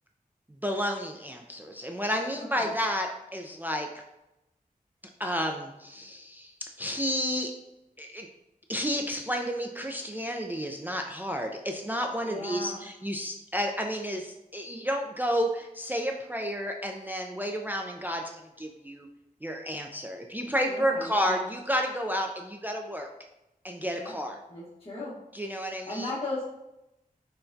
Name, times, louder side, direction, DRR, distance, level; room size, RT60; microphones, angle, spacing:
voice 1, 0.6-3.9 5.2-6.5 6.8-7.5 8.0-8.3 8.7-18.2 18.6-19.1 19.4-23.1 23.6-24.4 25.3-26.1, equal, 10° right, 2 dB, 0.3 m, -31 dB
voice 2, 2.3-2.7 12.2-12.8 20.7-21.5 24.0-24.1 24.5-25.1 25.9-26.4, left 2 dB, 40° left, -10 dB, 1.1 m, -37 dB
5.6 x 2.2 x 2.6 m, 0.91 s
wide cardioid pair, 80°, 15 cm